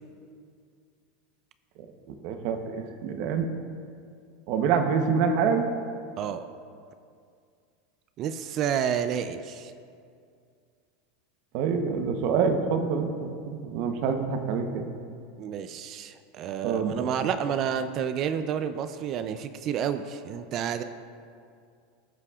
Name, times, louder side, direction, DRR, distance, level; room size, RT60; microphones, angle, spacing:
voice 1, 2.1-3.5 4.5-5.7 11.5-14.9 16.6-17.1, right 6 dB, 60° right, 6 dB, 0.9 m, -26 dB
voice 2, 8.2-9.7 15.4-20.8, right 8 dB, 45° right, 10 dB, 0.4 m, -30 dB
17.0 x 5.7 x 2.4 m, 2.3 s
supercardioid pair, 120°, 0 cm